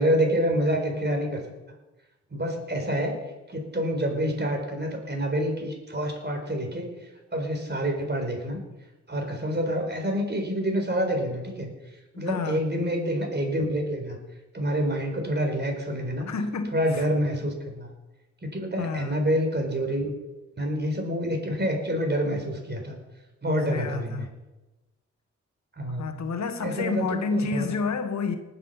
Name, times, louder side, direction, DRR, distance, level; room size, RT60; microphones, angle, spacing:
voice 1, 0.0-1.4 2.3-3.2 3.5-6.9 7.3-8.6 9.1-11.7 12.2-14.2 14.5-16.3 16.7-17.9 18.4-20.2 20.5-23.0 23.4-24.3 25.8-26.1 26.6-27.8, equal, 35° right, 4.8 m, -27 dB
voice 2, 12.3-12.6 16.3-16.7 18.8-19.2 23.7-24.3 26.0-28.4, left 4 dB, 70° left, 1.4 m, -29 dB
19.5 x 7.6 x 5.7 m
cardioid pair, 50°, 29 cm